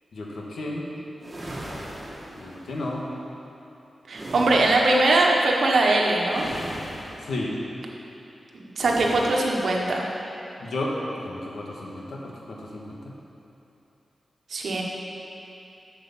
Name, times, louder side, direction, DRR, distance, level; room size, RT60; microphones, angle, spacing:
voice 1, 0.1-0.9 2.4-3.0 7.2-7.5 10.6-10.9 11.2-13.0, left 2 dB, 85° left, -3 dB, 1.5 m, -33 dB
sound 1, 1.2-2.8 4.1-5.1 6.3-7.4 8.8-9.7, right 1 dB, 25° right, 1.5 m, -38 dB
voice 2, 4.1-6.5 8.5-10.1 14.5-14.8, right 2 dB, 70° right, -1 dB, 1.2 m, -21 dB
7.9 x 6.5 x 7.2 m, 2.9 s
wide cardioid pair, 145°, 0 cm